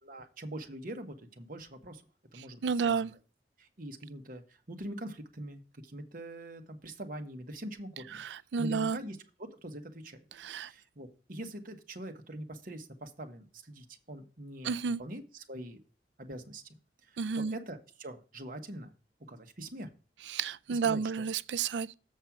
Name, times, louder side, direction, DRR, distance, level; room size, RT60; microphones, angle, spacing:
voice 1, 0.0-2.0 2.3-3.2 3.6-8.2 8.6-10.2 10.5-15.8 16.2-16.6 17.1-18.9 19.3-19.9 20.7-21.0, right 1 dB, 50° right, 1.3 m, -43 dB
voice 2, 2.6-3.1 8.2-9.0 10.4-10.7 14.6-15.0 17.2-17.6 20.3-21.9, right 5 dB, 85° right, 0.4 m, -31 dB
7.5 x 5.5 x 5.9 m
head